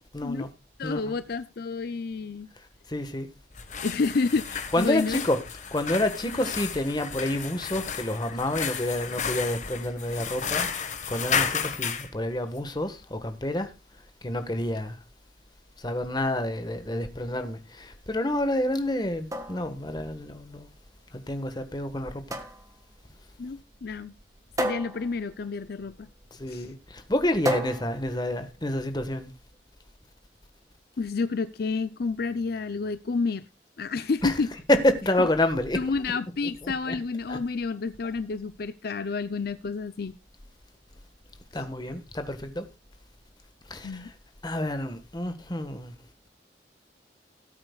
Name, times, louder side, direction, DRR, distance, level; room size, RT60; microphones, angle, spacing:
voice 1, 0.1-0.5 0.8-1.1 2.9-3.3 4.7-5.4 5.7-13.7 14.2-15.0 15.8-20.7 21.1-22.4 26.3-29.3 34.2-34.4 34.7-35.8 36.6-37.0 37.3-37.4 41.5-42.6 43.7-44.1 44.4-46.0, left 1 dB, 25° left, 1.4 m, -28 dB
voice 2, 0.8-2.5 3.8-5.2 23.4-24.1 24.6-26.1 26.5-26.7 31.0-33.5 33.8-34.5 35.7-40.1 43.8-44.1, left 4 dB, 60° left, 0.5 m, -29 dB
sound 1, 3.5-12.1, left 6 dB, 45° left, 1.4 m, -32 dB
sound 2, 19.0-29.0, equal, 20° right, 1.5 m, -36 dB
18.0 x 8.9 x 2.3 m
head